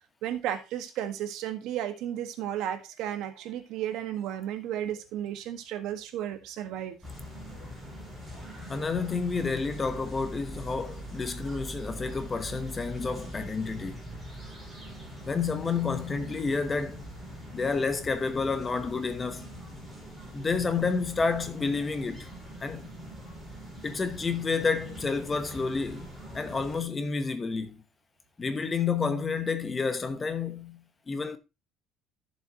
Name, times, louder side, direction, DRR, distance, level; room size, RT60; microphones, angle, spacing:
voice 1, 0.2-7.0, right 11 dB, 70° right, 1.6 m, -33 dB
sound 1, 7.0-26.8, right 1 dB, 5° right, 4.6 m, -43 dB
voice 2, 8.7-14.0 15.2-17.0 17.5-19.5 20.3-22.3 22.6-22.9 23.8-26.1 26.3-27.8 28.4-31.4, left 4 dB, 20° left, 1.0 m, -30 dB
13.5 x 7.3 x 3.0 m
cardioid pair, 160°, 0 cm